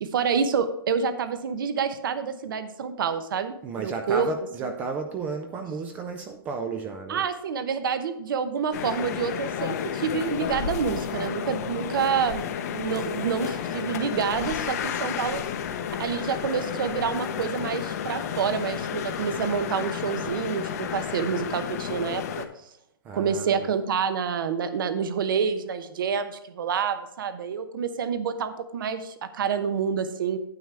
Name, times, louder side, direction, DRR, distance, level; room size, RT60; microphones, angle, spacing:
voice 1, 0.0-4.3 4.6-4.7 7.1-12.4 12.7-15.4 16.0-22.4 23.1-30.4, right 6 dB, 60° right, 10 dB, 0.9 m, -28 dB
voice 2, 3.6-7.2 23.0-23.7, right 4 dB, 10° right, 6 dB, 0.4 m, -33 dB
sound 1, 8.7-22.5, left 8 dB, 45° left, 0.8 m, -32 dB
9.4 x 8.2 x 3.3 m, 0.77 s
hypercardioid pair, 170°, 12 cm